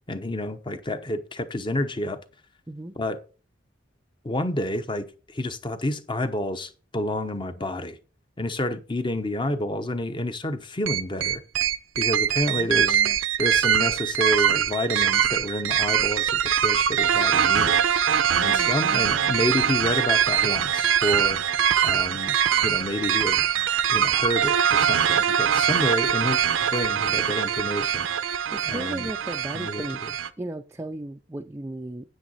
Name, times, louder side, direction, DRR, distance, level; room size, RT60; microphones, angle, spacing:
voice 1, 0.1-2.2 3.0-3.2 4.2-8.0 8.4-11.4 12.0-13.0 13.4-17.9 18.4-21.4 21.8-22.4 22.6-23.4 23.9-28.1 28.7-29.1 29.5-30.1, left 1 dB, 25° left, 0.8 m, -29 dB
sound 1, 10.9-30.3, right 9 dB, 85° right, 0.6 m, -23 dB
voice 2, 12.5-13.2 18.3-19.4 28.5-30.0 30.4-32.1, right 1 dB, 15° right, 0.4 m, -36 dB
9.2 x 8.6 x 4.1 m
head